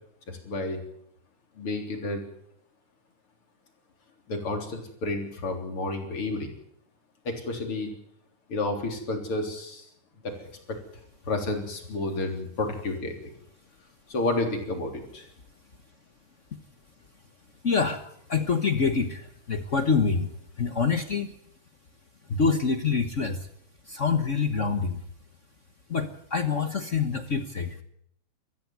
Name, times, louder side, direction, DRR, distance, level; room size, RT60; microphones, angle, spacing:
voice 1, 0.3-0.8 1.6-2.3 4.3-6.5 7.2-7.9 8.5-9.9 10.2-10.8 11.3-13.3 14.1-15.3, left 2 dB, 45° left, 4 dB, 4.3 m, -31 dB
voice 2, 17.6-21.3 22.3-23.5 23.9-25.0 25.9-27.8, left 5 dB, 70° left, 9 dB, 0.7 m, -26 dB
22.5 x 14.5 x 9.4 m, 0.71 s
omnidirectional pair, 3.3 m